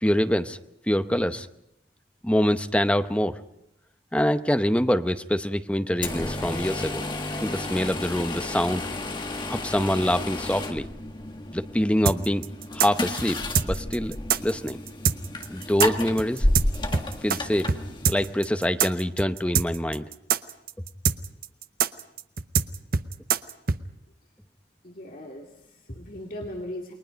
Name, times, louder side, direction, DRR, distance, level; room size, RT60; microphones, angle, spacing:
voice 1, 0.0-0.6 0.9-1.5 2.2-3.3 4.1-7.0 7.4-8.8 9.5-10.9 11.5-12.4 12.7-14.2 14.4-14.8 15.5-16.4 17.2-17.7 18.1-20.1, equal, 5° left, 9 dB, 0.8 m, -25 dB
sound 1, 6.0-18.5, left 1 dB, 25° left, 1.6 m, -31 dB
sound 2, 12.1-17.4 17.7-17.8 18.0-23.8, right 6 dB, 50° right, 0.8 m, -24 dB
voice 2, 24.8-26.9, left 1 dB, 45° left, 0 dB, 2.3 m, -38 dB
29.0 x 21.5 x 5.3 m, 0.79 s
head